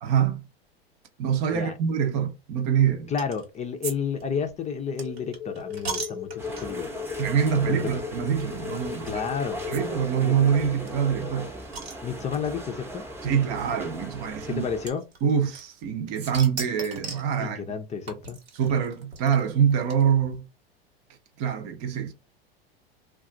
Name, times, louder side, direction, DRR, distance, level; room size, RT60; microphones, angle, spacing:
voice 1, 0.0-0.4 1.2-3.1 7.2-9.2 9.7-11.5 13.2-14.6 15.2-17.6 18.5-20.5 21.4-22.1, right 8 dB, 50° right, 0.7 m, -25 dB
voice 2, 3.1-7.0 7.7-7.9 9.0-9.6 10.2-10.3 12.0-13.0 14.5-15.0 17.4-18.4, left 6 dB, 25° left, 0.5 m, -31 dB
sound 1, 3.2-3.5 3.8-3.9 4.2-6.9 7.5-7.7 7.9-8.0 9.1-9.2 9.7-9.8 10.1-10.2 10.4-10.5 10.9-12.5 13.4-13.5 14.9-15.9 16.2-17.3 18.1-20.3, right 4 dB, 90° right, 1.2 m, -38 dB
sound 2, 5.0-11.5, left 8 dB, 80° left, 0.7 m, -37 dB
sound 3, 6.4-14.9, right 1 dB, 10° right, 0.8 m, -39 dB
2.3 x 2.3 x 3.8 m
hypercardioid pair, 95°, 30 cm